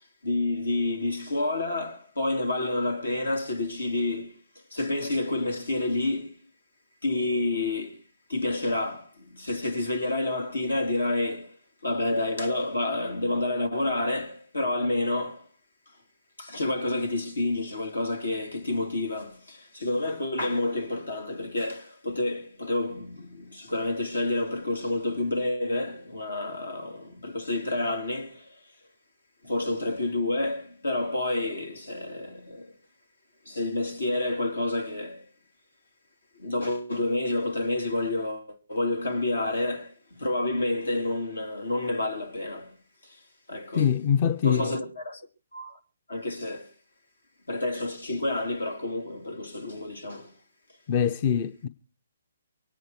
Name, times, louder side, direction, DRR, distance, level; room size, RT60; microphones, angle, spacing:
voice 1, 0.2-4.3 4.7-6.4 7.0-8.0 8.3-11.6 11.8-15.4 16.4-28.6 29.4-32.7 33.5-35.3 36.4-42.8 43.0-43.2 43.5-43.9 44.4-45.2 45.5-45.8 46.1-46.7 47.5-50.3, left 2 dB, 80° left, 3.3 m, -29 dB
voice 2, 43.7-44.8 50.9-51.7, left 8 dB, 35° left, 0.7 m, -24 dB
24.5 x 9.4 x 4.5 m
figure-of-eight pair, 135°, 0 cm